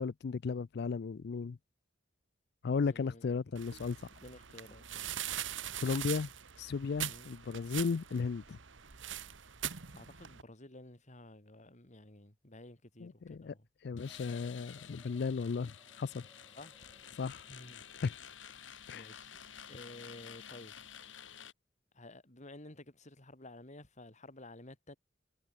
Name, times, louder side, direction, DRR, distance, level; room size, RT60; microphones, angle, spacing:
voice 1, 0.0-1.6 2.6-4.0 5.8-6.3 6.6-8.6 13.0-13.5 13.8-16.2 17.2-17.4 18.0-18.1 18.9-19.1, left 5 dB, 60° left, 0.4 m, -35 dB
voice 2, 2.9-3.3 4.2-5.2 7.0-7.3 9.9-13.7 16.5-16.7 17.5-17.8 18.9-19.4 19.7-20.7 21.9-25.0, left 1 dB, 40° left, 4.4 m, -52 dB
sound 1, 3.6-10.4, right 11 dB, 90° right, 1.6 m, -42 dB
sound 2, 14.0-21.5, left 8 dB, 90° left, 2.6 m, -51 dB
sound 3, 14.1-18.9, equal, ahead, 5.5 m, -67 dB
head